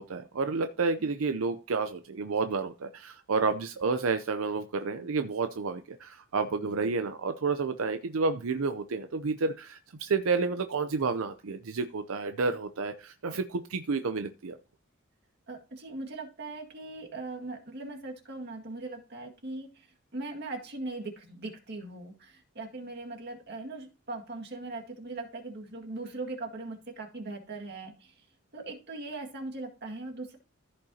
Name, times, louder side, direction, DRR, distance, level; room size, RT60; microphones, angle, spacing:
voice 1, 0.0-14.6, right 4 dB, 85° right, 8 dB, 0.6 m, -30 dB
voice 2, 15.5-19.9 20.1-28.3 28.5-30.4, right 2 dB, 55° right, 2 dB, 2.0 m, -40 dB
14.5 x 5.4 x 2.8 m, 0.34 s
head